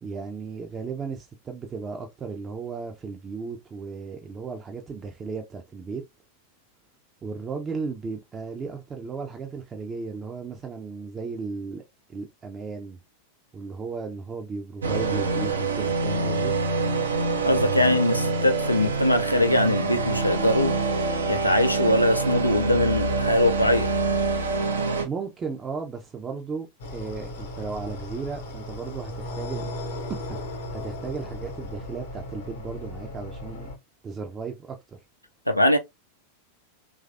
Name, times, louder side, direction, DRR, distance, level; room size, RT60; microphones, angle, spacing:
voice 1, 0.0-6.0 7.2-11.8 12.1-13.0 13.5-16.5 25.0-26.7 26.9-29.7 30.3-33.7 34.0-35.0, right 5 dB, 20° right, 0.6 m, -35 dB
sound 1, 14.8-25.1, right 3 dB, 70° right, 0.6 m, -26 dB
voice 2, 17.4-20.7 21.3-23.9 35.5-35.8, left 1 dB, 90° left, 0.4 m, -22 dB
sound 2, 26.8-33.8, left 1 dB, 60° left, 0.9 m, -36 dB
3.1 x 2.4 x 2.5 m
figure-of-eight pair, 90°, 0 cm